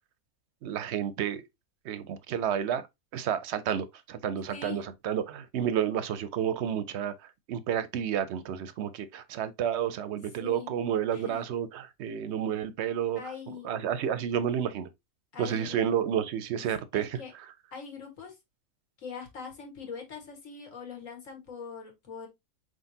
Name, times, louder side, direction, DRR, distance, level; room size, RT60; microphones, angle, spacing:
voice 1, 0.6-1.4 1.8-2.8 3.1-13.3 13.6-14.9 15.4-17.5, right 9 dB, 65° right, 0.7 m, -31 dB
voice 2, 4.5-4.8 10.4-10.7 11.1-11.4 13.2-13.9 15.3-15.9 16.9-17.3 17.7-18.4 19.0-22.3, left 6 dB, 65° left, 1.8 m, -42 dB
4.8 x 3.8 x 2.6 m
omnidirectional pair, 1.5 m